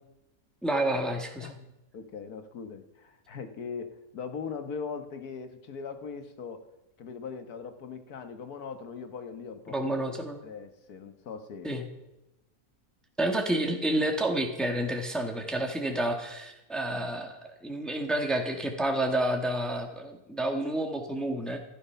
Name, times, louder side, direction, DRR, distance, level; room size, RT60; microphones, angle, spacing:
voice 1, 0.6-1.5 9.7-10.4 11.6-11.9 13.2-21.6, right 1 dB, ahead, 3 dB, 1.4 m, -29 dB
voice 2, 1.4-6.7 7.0-9.8 10.4-11.8, left 5 dB, 75° left, 8 dB, 1.7 m, -40 dB
14.0 x 12.5 x 5.7 m, 0.93 s
omnidirectional pair, 1.6 m